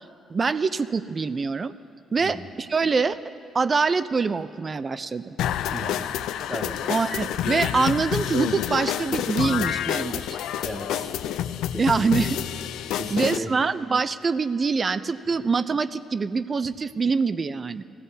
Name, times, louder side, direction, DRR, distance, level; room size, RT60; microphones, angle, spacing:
voice 1, 0.3-1.7 2.1-3.2 3.5-5.4 6.9-10.2 11.8-12.4 12.9-17.8, right 4 dB, 35° right, 14 dB, 0.4 m, -24 dB
sound 1, 5.4-13.4, left 11 dB, 85° left, 0.4 m, -28 dB
voice 2, 5.7-6.1 6.5-7.0 10.6-11.1 11.7-12.1 13.0-13.5, equal, 15° right, 0 dB, 2.0 m, -35 dB
22.0 x 15.5 x 2.7 m, 2.7 s
cardioid pair, 90°, 0 cm